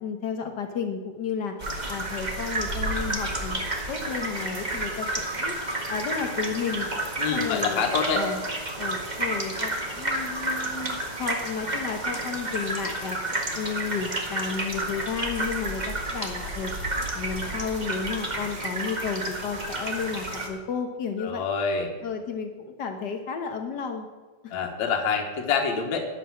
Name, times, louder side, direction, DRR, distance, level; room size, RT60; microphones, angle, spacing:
voice 1, 0.0-1.5 1.9-5.5 5.9-6.9 7.3-7.8 8.1-8.4 8.8-13.2 13.5-16.7 17.1-21.4 22.0-24.1 24.4-24.6, left 6 dB, 85° left, 5 dB, 0.9 m, -32 dB
sound 1, 1.6-20.5, right 1 dB, 25° right, 1.0 m, -31 dB
voice 2, 7.2-8.2 21.2-21.9 24.5-26.1, left 5 dB, 70° left, 2 dB, 2.6 m, -26 dB
11.5 x 10.5 x 7.4 m, 1.3 s
omnidirectional pair, 3.5 m